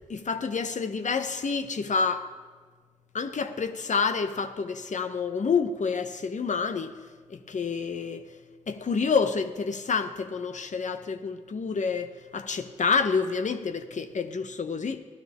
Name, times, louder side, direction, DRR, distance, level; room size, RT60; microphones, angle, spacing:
voice 1, 0.1-2.3 3.1-6.9 7.3-8.3 8.7-15.0, left 5 dB, 70° left, 0.8 m, -28 dB
15.5 x 12.0 x 3.5 m
cardioid pair, 40°, 13 cm